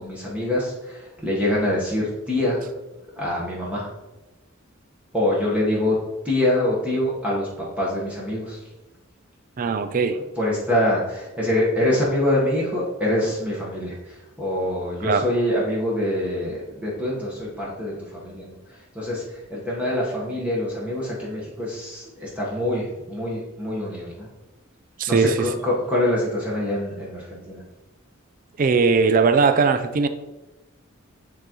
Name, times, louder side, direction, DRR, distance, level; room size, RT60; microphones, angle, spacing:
voice 1, 0.0-2.7 3.2-3.9 5.1-6.0 6.2-8.6 10.4-24.3 25.1-27.6, left 1 dB, 5° right, 1.2 m, -25 dB
voice 2, 9.6-10.2 15.0-15.3 25.0-25.5 28.6-30.1, right 4 dB, 40° right, 0.4 m, -19 dB
9.5 x 3.8 x 3.0 m
head